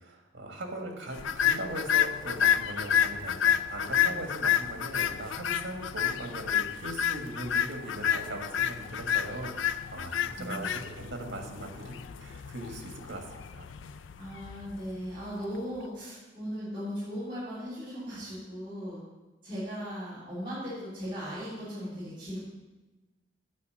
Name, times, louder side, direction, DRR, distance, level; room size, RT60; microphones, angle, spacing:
voice 1, 0.0-14.0, right 1 dB, 75° right, 2 dB, 1.6 m, -40 dB
sound 1, 1.2-15.5, left 9 dB, 90° left, 0.4 m, -30 dB
voice 2, 10.4-10.9 14.2-19.0 19.4-22.4, equal, 25° right, -13 dB, 3.5 m, -38 dB
8.5 x 5.0 x 7.6 m, 1.1 s
head